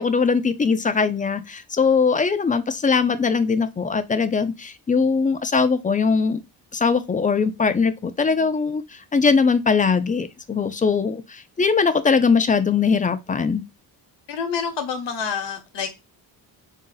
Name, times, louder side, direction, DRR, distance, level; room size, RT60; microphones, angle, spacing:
voice 1, 0.0-6.4 6.7-8.8 9.1-13.6, left 5 dB, 20° left, 0.3 m, -21 dB
voice 2, 14.3-16.0, left 6 dB, 85° left, 1.1 m, -28 dB
3.5 x 2.7 x 3.8 m
cardioid pair, 115°, 42 cm